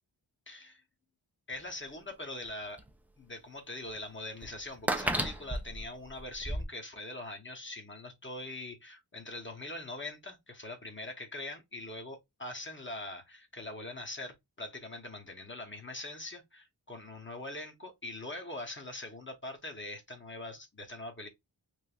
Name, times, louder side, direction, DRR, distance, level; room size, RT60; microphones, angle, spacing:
voice 1, 0.5-0.8 1.5-2.8 3.2-21.3, left 2 dB, 25° left, 0.9 m, -42 dB
sound 1, 1.5-1.6 2.5-2.6 2.8-2.9 3.9-4.0 4.4-6.7, right 1 dB, 5° right, 0.4 m, -33 dB
3.1 x 2.5 x 2.4 m
wide cardioid pair, 50°, 46 cm